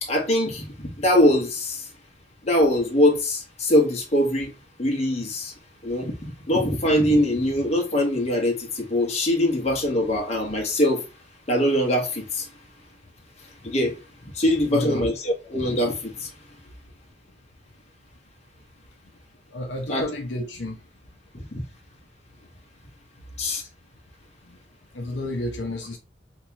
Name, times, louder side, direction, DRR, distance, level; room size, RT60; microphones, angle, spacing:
voice 1, 0.0-1.9 2.4-4.5 4.8-5.5 5.8-11.0 11.5-12.5 13.6-13.9 14.3-16.3 19.9-20.0 21.5-21.6 23.4-23.6, left 1 dB, 35° left, 1.0 m, -22 dB
voice 2, 14.7-15.0 19.5-20.8 24.5-24.6 24.9-26.0, left 1 dB, 70° left, 0.6 m, -31 dB
3.4 x 2.9 x 2.8 m
head